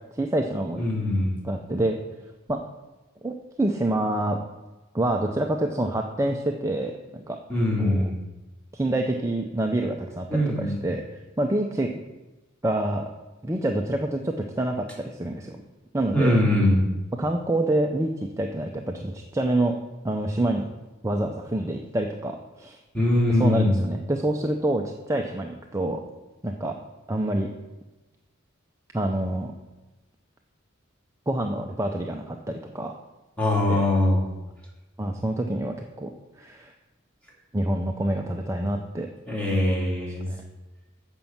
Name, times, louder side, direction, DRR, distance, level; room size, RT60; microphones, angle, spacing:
voice 1, 0.1-0.8 1.4-2.0 2.5-2.6 3.2-4.4 4.9-7.4 7.8-8.1 8.7-11.9 12.6-13.1 13.4-15.6 15.9-16.4 17.2-19.8 20.0-20.7 21.0-22.8 23.3-26.0 26.4-26.7 27.1-27.5 28.9-29.5 31.3-32.9 33.7-33.9 35.0-36.1 36.4-36.7 37.5-39.1 40.3-40.4, right 1 dB, 15° right, 2 dB, 0.5 m, -27 dB
voice 2, 0.8-1.4 7.5-8.2 10.3-10.8 16.1-16.9 22.9-23.7 33.4-34.3 39.3-40.2, left 1 dB, 5° left, -5 dB, 2.5 m, -22 dB
7.5 x 5.3 x 7.1 m, 1.1 s
head